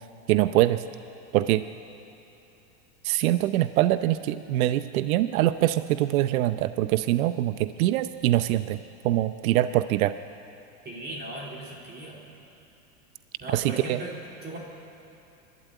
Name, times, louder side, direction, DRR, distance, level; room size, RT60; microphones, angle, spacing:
voice 1, 0.3-0.8 1.3-1.6 3.0-8.8 9.0-10.1 13.5-14.0, right 14 dB, 65° right, 12 dB, 0.7 m, -23 dB
voice 2, 10.8-12.2 13.4-14.2 14.4-14.6, right 1 dB, 20° right, -2 dB, 3.2 m, -38 dB
24.5 x 12.5 x 9.3 m, 2.9 s
supercardioid pair, 135°, 45 cm